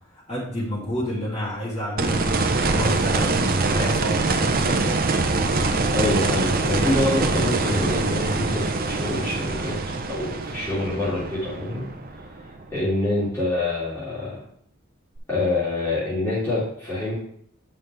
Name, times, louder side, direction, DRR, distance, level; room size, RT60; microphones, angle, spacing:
voice 1, 0.1-5.0, equal, 30° left, -7 dB, 3.7 m, -30 dB
sound 1, 2.0-12.9 15.2-15.3, right 3 dB, 45° right, 0.8 m, -24 dB
voice 2, 5.9-9.8 10.1-11.9 12.1-14.4 15.3-17.1, left 2 dB, 15° left, -11 dB, 2.8 m, -26 dB
9.1 x 5.7 x 3.4 m, 0.66 s
head